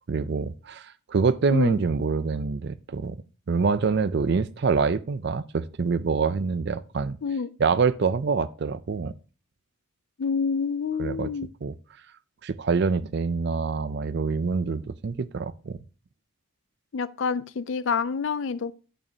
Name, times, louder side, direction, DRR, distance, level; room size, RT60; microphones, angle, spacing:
voice 1, 0.1-3.2 3.5-7.2 7.6-9.1 11.0-11.3 11.6-11.7 12.4-15.8, right 4 dB, 50° right, 0.4 m, -25 dB
voice 2, 10.2-11.5 16.9-18.8, left 5 dB, 60° left, 0.4 m, -27 dB
9.0 x 6.6 x 2.8 m
head